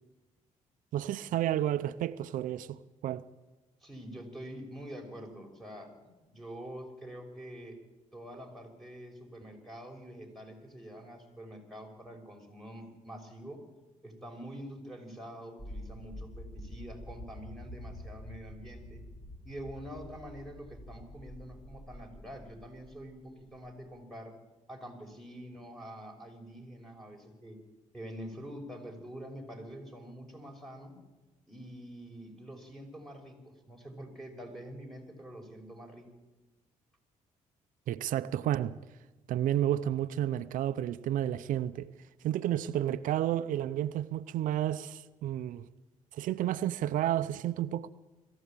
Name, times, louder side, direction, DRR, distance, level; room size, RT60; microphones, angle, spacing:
voice 1, 0.9-3.2 37.9-38.8 39.3-41.9 42.2-45.7 46.1-47.9, right 12 dB, 80° right, 0.7 m, -31 dB
voice 2, 3.8-7.8 8.1-13.6 14.0-19.0 19.4-24.3 24.7-27.6 27.9-31.0 31.5-36.1, equal, ahead, 5.7 m, -46 dB
sound 1, 15.6-23.7, equal, 20° left, 3.3 m, -47 dB
22.0 x 15.0 x 8.9 m
cardioid pair, 85°, 13 cm